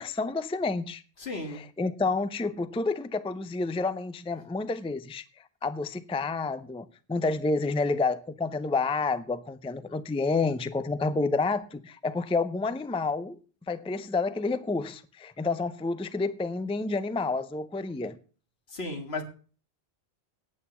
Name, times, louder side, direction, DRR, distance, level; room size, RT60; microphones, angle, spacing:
voice 1, 0.0-1.0 1.5-5.2 5.6-13.4 13.7-18.2, left 3 dB, 10° left, 0.4 m, -29 dB
voice 2, 1.2-1.7 18.7-19.2, left 2 dB, 80° left, 2.2 m, -34 dB
9.1 x 8.6 x 7.1 m
omnidirectional pair, 1.0 m